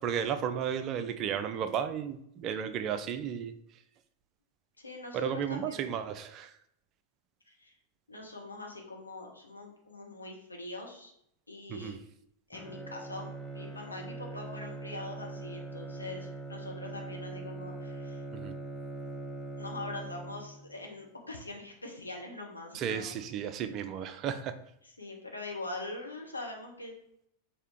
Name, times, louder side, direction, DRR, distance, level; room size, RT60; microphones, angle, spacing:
voice 1, 0.0-3.6 5.1-6.5 11.7-12.0 18.3-18.5 22.7-24.6, right 8 dB, 35° right, 0.4 m, -34 dB
voice 2, 4.8-5.9 7.5-7.7 8.1-11.1 11.5-12.0 12.5-18.2 19.6-23.2 25.0-26.9, left 2 dB, 80° left, 0.9 m, -43 dB
Bowed string instrument, 12.5-20.8, right 2 dB, ahead, 0.7 m, -42 dB
4.5 x 2.8 x 3.5 m
figure-of-eight pair, 90°, 0 cm